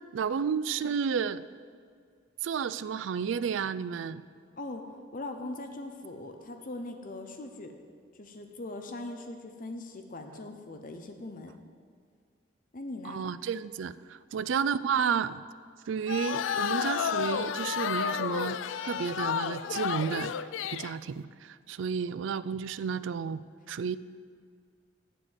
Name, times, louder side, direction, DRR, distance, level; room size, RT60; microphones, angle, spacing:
voice 1, 0.1-1.4 2.4-4.2 13.0-15.4 15.9-20.3 20.7-23.4 23.7-24.0, right 6 dB, 80° right, 16 dB, 0.4 m, -31 dB
voice 2, 5.1-7.7 8.2-11.5 12.7-13.2, left 2 dB, 45° left, 5 dB, 0.7 m, -40 dB
sound 1, 16.1-20.9, left 8 dB, 80° left, 0.3 m, -31 dB
7.7 x 7.4 x 8.0 m, 2.1 s
head